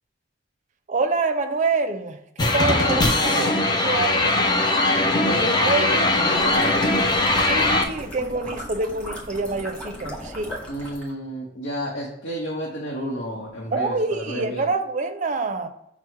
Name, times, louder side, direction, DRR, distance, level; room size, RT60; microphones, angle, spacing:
voice 1, 0.9-4.6 5.6-6.1 7.4-10.6 13.7-15.7, right 3 dB, 40° right, 8 dB, 0.4 m, -26 dB
sound 1, 2.4-7.8, left 2 dB, 20° left, 0.4 m, -20 dB
voice 2, 2.7-3.6 5.2-6.7 10.7-14.6, equal, 75° left, -3 dB, 0.8 m, -30 dB
sound 2, 6.3-11.1, equal, 5° left, 0.9 m, -36 dB
6.0 x 2.0 x 4.4 m, 0.81 s
head